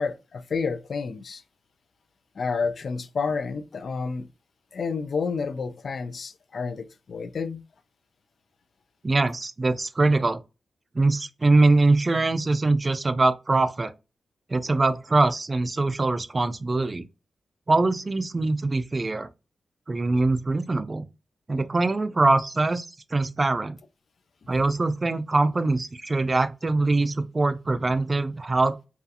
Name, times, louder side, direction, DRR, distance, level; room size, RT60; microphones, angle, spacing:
voice 1, 0.0-1.4 2.4-4.3 4.7-7.6 24.5-24.6, left 5 dB, 65° left, 0.3 m, -30 dB
voice 2, 9.0-10.4 10.9-13.9 14.5-17.0 17.7-19.3 19.9-21.1 21.5-23.8 24.5-28.7, right 3 dB, 35° right, 0.3 m, -23 dB
2.7 x 2.3 x 2.4 m
cardioid pair, 60°, 0 cm